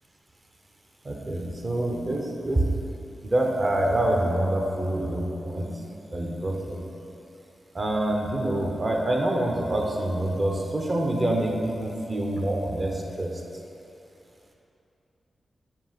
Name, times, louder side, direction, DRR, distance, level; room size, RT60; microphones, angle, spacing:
voice 1, 1.0-2.6 3.2-5.7 6.1-6.8 7.7-13.3, right 1 dB, 40° right, 0 dB, 1.0 m, -26 dB
7.4 x 2.8 x 5.9 m, 2.8 s
cardioid pair, 50°, 0 cm